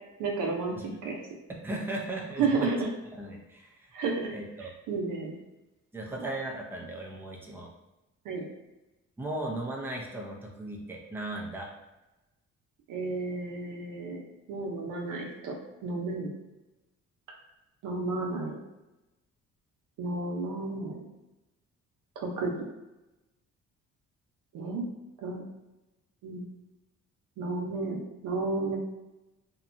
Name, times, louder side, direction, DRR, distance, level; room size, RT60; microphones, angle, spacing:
voice 1, 0.2-1.2 2.4-2.9 3.9-4.3 4.6-5.3 8.2-8.4 12.9-14.2 14.5-15.5 15.8-16.3 17.8-18.6 20.0-21.0 22.2-22.5 24.5-24.8 25.2-25.4 26.2-26.5 27.4-28.8, right 3 dB, 85° right, 0 dB, 0.7 m, -32 dB
voice 2, 1.6-2.7 3.2-3.9 4.3-4.7 5.9-7.7 9.2-11.7, right 1 dB, 5° right, -2 dB, 0.5 m, -37 dB
2.8 x 2.2 x 2.5 m, 0.99 s
cardioid pair, 90°, 30 cm